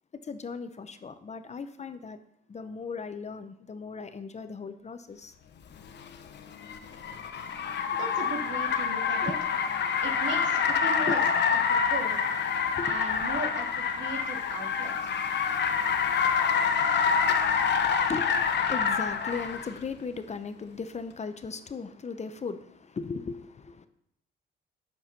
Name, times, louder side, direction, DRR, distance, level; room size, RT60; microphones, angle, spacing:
voice 1, 0.1-2.2 2.5-5.3 8.5-8.6 9.2-9.4 10.8-11.1 12.7-13.0 17.8-23.9, left 5 dB, 35° left, 0.9 m, -37 dB
Car, 5.8-19.7, left 6 dB, 60° left, 1.0 m, -27 dB
voice 2, 7.9-9.3 10.0-11.2 11.5-12.2 12.8-15.2, right 4 dB, 75° right, 2.4 m, -37 dB
9.2 x 7.0 x 6.0 m
cardioid pair, 90°, 20 cm